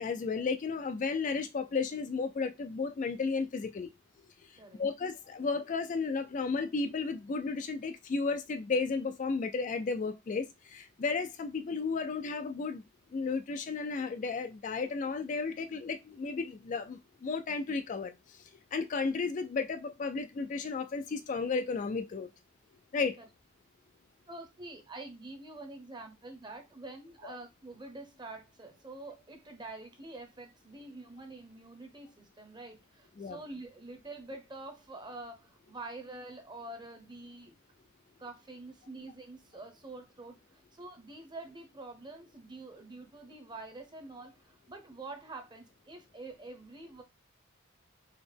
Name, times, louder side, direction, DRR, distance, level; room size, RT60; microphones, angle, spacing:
voice 1, 0.0-3.9 4.2-12.8 13.1-22.3 22.9-23.2 33.2-33.4, left 4 dB, 35° left, 0.3 m, -33 dB
voice 2, 24.3-37.6 38.2-47.0, right 2 dB, 20° right, 0.8 m, -46 dB
4.1 x 2.9 x 3.3 m
head